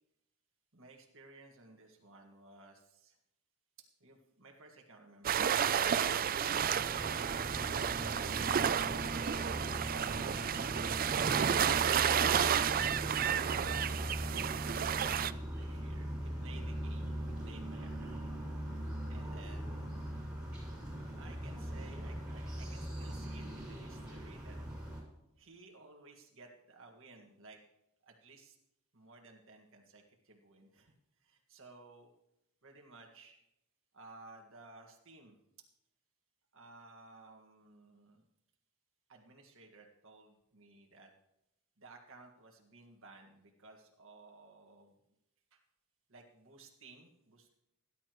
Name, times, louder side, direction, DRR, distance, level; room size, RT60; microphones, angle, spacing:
voice 1, 0.7-3.2 4.0-7.1 7.9-8.6 9.9-13.5 14.2-18.3 19.1-20.1 21.2-24.6 25.4-27.6 28.0-28.6 28.9-30.9 31.2-32.1 32.6-33.4 33.9-35.4 36.5-38.2 39.1-41.1 41.8-45.0 45.5-45.6 46.1-47.6, right 3 dB, 65° right, 1 dB, 1.9 m, -57 dB
sound 1, 5.2-15.3, right 8 dB, 40° right, 0.4 m, -31 dB
sound 2, 6.5-25.0, equal, 5° right, 5.8 m, -41 dB
18.5 x 11.5 x 3.1 m, 0.83 s
head